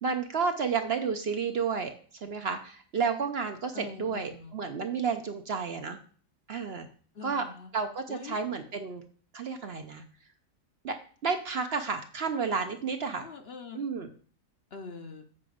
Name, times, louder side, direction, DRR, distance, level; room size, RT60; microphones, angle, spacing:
voice 1, 0.0-1.9 2.2-6.0 6.5-6.9 7.2-7.5 7.7-9.0 9.3-10.0 10.8-11.0 11.2-13.3 13.7-14.1, right 5 dB, 55° right, 7 dB, 0.8 m, -31 dB
voice 2, 3.7-4.6 7.1-7.7 8.1-8.4 13.2-13.8 14.7-15.3, left 4 dB, 50° left, 6 dB, 0.9 m, -43 dB
8.5 x 5.0 x 5.0 m, 0.44 s
omnidirectional pair, 1.5 m